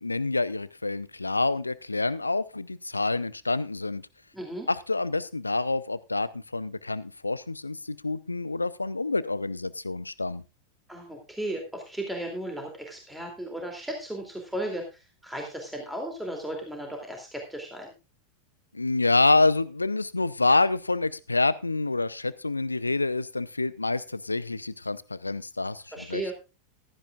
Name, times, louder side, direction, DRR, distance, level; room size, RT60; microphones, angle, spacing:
voice 1, 0.0-4.0 4.7-10.4 18.7-26.2, left 3 dB, 80° left, 18 dB, 0.6 m, -27 dB
voice 2, 4.3-4.7 10.9-17.9 25.9-26.3, right 1 dB, 5° right, 1 dB, 2.9 m, -35 dB
15.5 x 13.5 x 2.5 m, 0.28 s
figure-of-eight pair, 90°, 0 cm